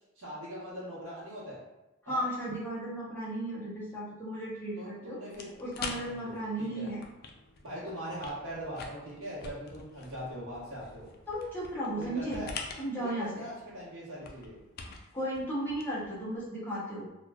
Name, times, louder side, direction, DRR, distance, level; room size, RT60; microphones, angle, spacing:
voice 1, 0.1-1.6 2.1-2.2 4.7-5.6 5.9-6.9 7.6-11.1 11.9-12.5 13.0-14.6, equal, 75° right, -8 dB, 1.0 m, -41 dB
voice 2, 2.0-5.2 5.6-7.0 11.3-12.4 12.8-13.5 15.1-17.1, right 1 dB, 10° left, -8 dB, 0.6 m, -35 dB
sound 1, 5.3-16.5, left 4 dB, 45° left, 0.3 m, -46 dB
3.0 x 2.2 x 2.2 m, 0.98 s
head